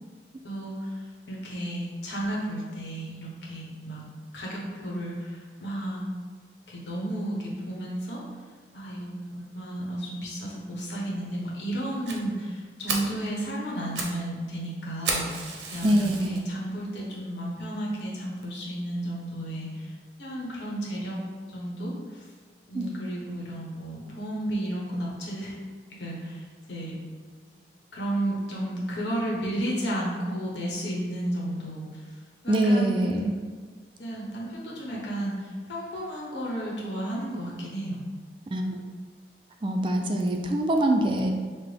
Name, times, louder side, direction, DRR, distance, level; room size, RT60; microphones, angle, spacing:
voice 1, 0.4-4.0 4.3-6.0 6.7-8.2 8.7-21.2 21.5-22.3 22.7-25.5 25.9-26.9 27.4-27.6 27.9-32.2 32.4-33.4 34.0-38.0, right 1 dB, 85° left, -4 dB, 1.0 m, -33 dB
Fire, 12.1-12.2 12.6-12.7 12.9-13.2 13.7-14.2 14.4-14.5 15.0-16.4 17.0-17.1 17.6-17.7 18.0-18.1 18.4-18.5, right 3 dB, 80° right, 0.6 m, -32 dB
voice 2, 15.8-16.4 22.7-22.9 32.5-33.2 38.5-38.8 39.6-41.3, right 1 dB, 30° right, 3 dB, 0.3 m, -24 dB
5.8 x 2.0 x 3.3 m, 1.6 s
head